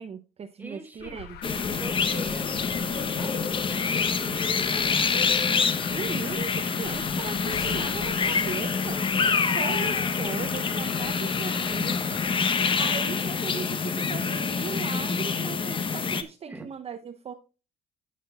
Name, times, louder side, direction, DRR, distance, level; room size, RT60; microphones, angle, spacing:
voice 1, 0.0-1.8 5.9-17.3, right 6 dB, 35° right, 0.7 m, -38 dB
voice 2, 0.6-1.2 1.8-5.3 9.6-10.1 12.7-13.0 16.4-16.7, right 2 dB, 10° right, 1.3 m, -44 dB
Alarm, 1.0-12.5, left 9 dB, 75° left, 1.1 m, -43 dB
sound 1, 1.4-16.2, left 5 dB, 30° left, 0.8 m, -26 dB
sound 2, 6.9-8.7, left 11 dB, 55° left, 0.6 m, -42 dB
16.5 x 5.9 x 2.3 m
cardioid pair, 110°, 17 cm